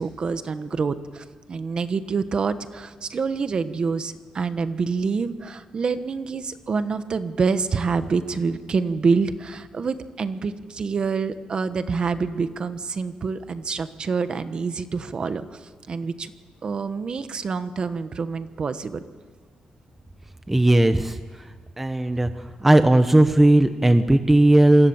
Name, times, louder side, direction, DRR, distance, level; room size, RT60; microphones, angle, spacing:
voice 1, 0.0-15.6 15.9-16.3 16.6-19.0, right 5 dB, 35° right, 11 dB, 1.2 m, -26 dB
voice 2, 20.5-21.2 21.8-22.3 22.6-24.9, right 1 dB, 10° right, 9 dB, 0.9 m, -16 dB
27.5 x 24.0 x 7.3 m, 1.5 s
wide cardioid pair, 155°, 3 cm